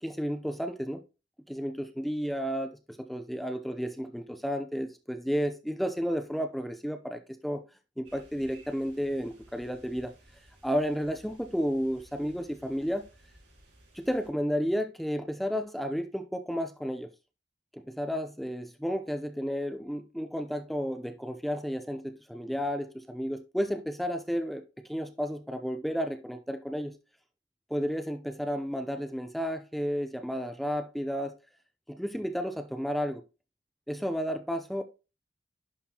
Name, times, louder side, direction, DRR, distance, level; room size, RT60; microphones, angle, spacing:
voice 1, 0.0-1.0 1.5-7.6 8.0-10.1 10.6-13.1 13.9-17.1 17.7-24.6 24.9-26.9 27.7-31.4 31.9-33.2 33.9-34.8, equal, ahead, 0.6 m, -32 dB
sound 1, 8.0-14.3, right 1 dB, 75° right, 3.9 m, -58 dB
11.0 x 4.4 x 2.9 m
head